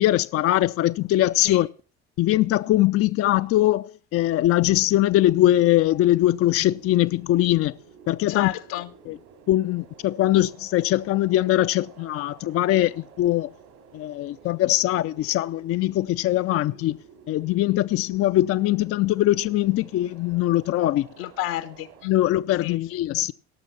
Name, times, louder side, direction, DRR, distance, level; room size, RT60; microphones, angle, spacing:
voice 1, 0.0-1.7 2.2-7.8 8.1-8.5 9.1-9.2 9.5-13.5 13.9-17.0 17.3-21.1 22.1-23.3, left 14 dB, 50° left, 0.5 m, -21 dB
sound 1, 5.2-22.1, right 6 dB, 70° right, 2.6 m, -51 dB
voice 2, 8.3-8.9 21.2-22.1 22.6-22.8, left 15 dB, 80° left, 1.1 m, -31 dB
17.5 x 6.3 x 5.7 m
supercardioid pair, 80°, 30 cm